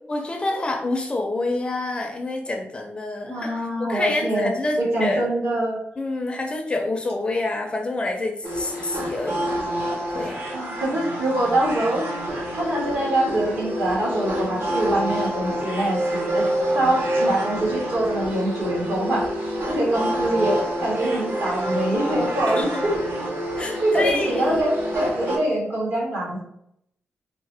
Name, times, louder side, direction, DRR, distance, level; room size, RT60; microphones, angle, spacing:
voice 1, 0.1-5.3 6.0-9.5 10.1-10.5 22.5-22.9 23.6-24.5, left 2 dB, 25° left, 3 dB, 0.4 m, -27 dB
voice 2, 3.3-4.5 4.8-5.8 10.5-16.5 16.7-19.2 19.7-22.9 23.8-26.4, right 1 dB, 65° right, -4 dB, 1.5 m, -24 dB
sound 1, 8.4-25.4, equal, 50° right, 0.9 m, -27 dB
3.6 x 2.0 x 3.3 m, 0.74 s
wide cardioid pair, 145°, 4 cm